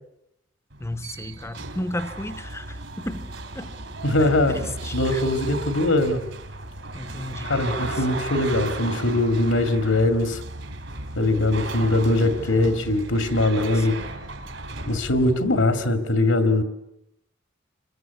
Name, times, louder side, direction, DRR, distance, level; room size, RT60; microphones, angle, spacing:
sound 1, 0.7-15.9, right 2 dB, 65° right, 3.8 m, -35 dB
voice 1, 0.8-3.8 4.2-5.2 6.9-8.1 12.4-12.9 13.5-14.0, left 1 dB, 15° left, 0.9 m, -34 dB
voice 2, 4.0-4.6 4.9-6.2 7.4-10.4 11.2-14.0 14.9-16.6, left 2 dB, 75° left, 2.2 m, -21 dB
26.5 x 22.5 x 8.3 m
head